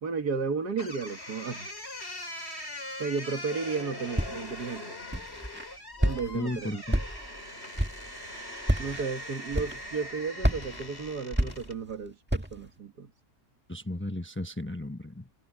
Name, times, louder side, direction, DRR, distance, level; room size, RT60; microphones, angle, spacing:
voice 1, 0.0-1.7 3.0-5.0 6.0-6.8 8.8-13.1, right 5 dB, 85° right, 2.3 m, -33 dB
sound 1, 0.8-11.8, left 1 dB, 40° left, 5.2 m, -41 dB
Walk footsteps, 4.2-4.6 5.1-5.6 6.0-6.5 6.9-7.4 7.7-8.1 8.6-9.0 9.5-10.0 10.4-11.9 12.3-12.7, equal, 5° right, 1.6 m, -29 dB
voice 2, 6.3-7.0 13.7-15.3, left 1 dB, 10° left, 0.9 m, -34 dB
omnidirectional pair, 1.7 m